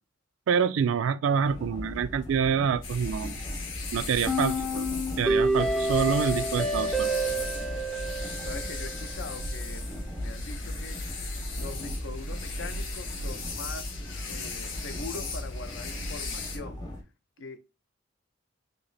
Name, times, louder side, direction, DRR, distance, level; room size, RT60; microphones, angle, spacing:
voice 1, 0.5-3.4 3.9-4.9 5.2-7.2, right 6 dB, 85° right, 0.3 m, -27 dB
sound 1, 1.4-17.0, left 1 dB, 20° left, 0.8 m, -41 dB
sound 2, 2.8-16.6, left 2 dB, 90° left, 0.9 m, -36 dB
sound 3, 4.3-9.3, right 1 dB, ahead, 0.3 m, -29 dB
voice 2, 8.4-11.2 11.6-16.8 17.4-17.6, left 3 dB, 70° left, 0.6 m, -42 dB
3.0 x 2.8 x 4.0 m
head